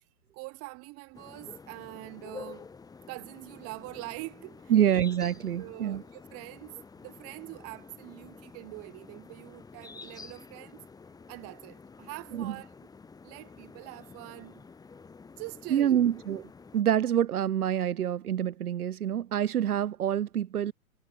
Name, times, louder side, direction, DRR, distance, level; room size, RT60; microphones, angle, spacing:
voice 1, 0.3-2.7 3.1-5.0 5.6-10.8 11.3-12.8 13.2-14.7 15.4-16.1, right 26 dB, 35° right, 3.4 m, -44 dB
sound 1, 1.1-16.8, left 4 dB, 10° left, 2.3 m, -49 dB
voice 2, 4.7-6.0 12.3-12.5 15.7-16.4 16.7-20.7, right 10 dB, 85° right, 1.4 m, -26 dB
hypercardioid pair, 140°, 43 cm